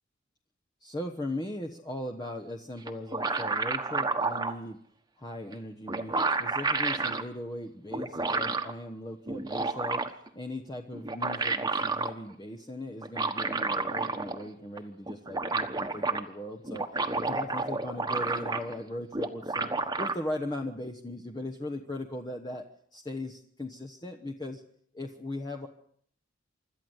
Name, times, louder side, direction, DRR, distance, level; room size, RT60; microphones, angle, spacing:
voice 1, 0.8-4.8 5.2-10.0 10.3-16.9 17.1-19.7 20.0-22.7 22.9-24.6 24.9-25.7, left 1 dB, 20° left, 1 dB, 1.1 m, -38 dB
sound 1, 2.9-4.6 5.5-5.6 5.9-7.2 7.9-8.7 9.3-10.3 10.9-12.1 13.0-14.5 14.8-14.9 15.1-16.2 16.6-18.8 19.1-20.1, right 3 dB, 20° right, 1.3 m, -30 dB
26.0 x 12.5 x 8.0 m, 0.65 s
head